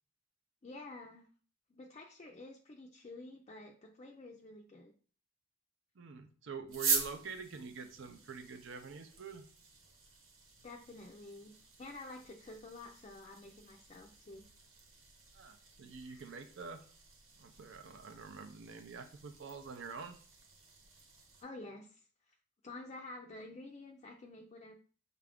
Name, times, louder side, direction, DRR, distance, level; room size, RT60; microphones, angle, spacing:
voice 1, 0.6-1.3 1.7-4.9 10.6-11.5 11.8-14.5 16.0-16.2 21.4-22.1 22.6-24.7, left 2 dB, 30° left, 0 dB, 0.4 m, -50 dB
voice 2, 6.0-9.4 15.3-16.9 17.4-20.2, right 5 dB, 60° right, 7 dB, 0.5 m, -46 dB
sound 1, 6.7-21.4, right 4 dB, 80° right, 1.0 m, -44 dB
5.6 x 2.5 x 3.4 m, 0.42 s
head